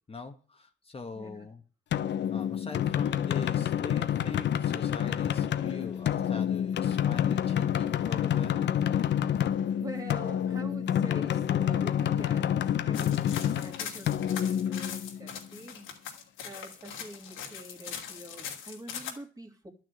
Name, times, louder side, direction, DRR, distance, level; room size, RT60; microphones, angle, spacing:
voice 1, 0.1-1.6 2.3-8.7, left 4 dB, 30° left, 5 dB, 1.4 m, -42 dB
voice 2, 1.1-1.5 9.8-16.0 16.4-19.7, right 1 dB, 20° right, 4 dB, 2.8 m, -45 dB
sound 1, 1.9-15.5, left 10 dB, 65° left, 0.9 m, -28 dB
sound 2, 12.9-19.1, left 8 dB, 90° left, 2.8 m, -41 dB
12.0 x 6.6 x 9.1 m, 0.39 s
cardioid pair, 90°, 20 cm